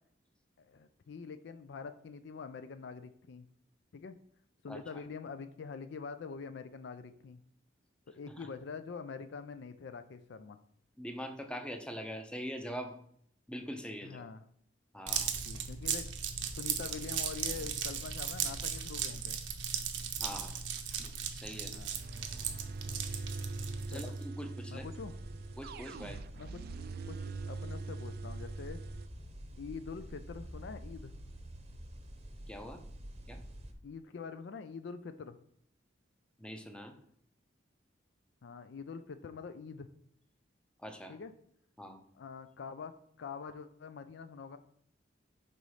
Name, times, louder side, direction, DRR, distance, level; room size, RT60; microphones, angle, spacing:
voice 1, 0.6-3.5 3.9-4.1 4.6-7.4 8.1-10.6 14.0-14.4 15.3-16.1 16.5-19.4 21.7-22.0 23.9-24.1 24.7-25.1 26.4-28.8 29.6-31.1 33.8-35.4 38.4-39.9 41.1-41.3 42.1-44.6, left 5 dB, 70° left, 10 dB, 0.4 m, -45 dB
voice 2, 4.7-5.0 8.3-8.5 11.0-13.0 13.5-14.2 14.9-15.3 20.2-20.6 21.3-21.7 23.9-24.9 25.6-26.2 32.5-32.8 33.3-33.4 36.4-36.9 40.8-41.2 41.8-42.0, equal, 5° left, 6 dB, 0.6 m, -43 dB
sound 1, 15.1-24.2, right 7 dB, 80° right, 0.7 m, -37 dB
sound 2, 20.5-29.1, right 3 dB, 55° right, 0.3 m, -43 dB
sound 3, 24.7-33.7, equal, 35° right, 0.8 m, -48 dB
5.5 x 4.0 x 4.7 m, 0.67 s
head